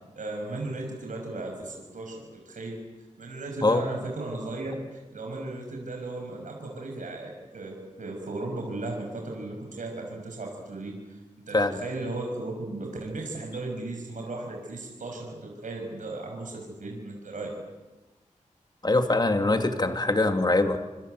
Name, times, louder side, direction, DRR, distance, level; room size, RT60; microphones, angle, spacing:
voice 1, 0.1-2.8 3.2-11.2 11.5-17.5, right 2 dB, 80° right, 1 dB, 6.1 m, -36 dB
voice 2, 18.8-20.8, left 2 dB, 35° left, 6 dB, 2.6 m, -23 dB
27.0 x 26.5 x 8.2 m, 1.2 s
wide cardioid pair, 95°, 13 cm